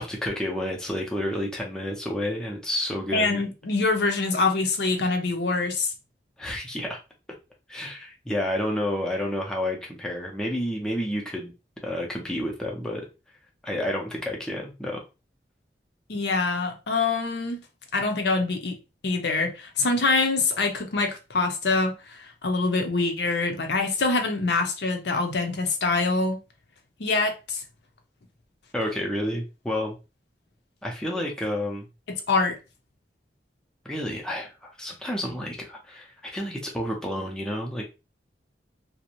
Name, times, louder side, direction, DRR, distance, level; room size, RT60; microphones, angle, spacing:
voice 1, 0.0-3.4 6.4-7.0 7.7-11.5 11.8-13.1 13.6-15.0 28.7-30.0 30.8-31.9 33.8-37.8, left 1 dB, 5° left, 0.5 m, -30 dB
voice 2, 3.1-5.9 16.1-17.6 17.9-18.8 19.0-26.4 27.0-27.6 32.3-32.6, left 3 dB, 70° left, 0.6 m, -25 dB
2.6 x 2.0 x 2.8 m
head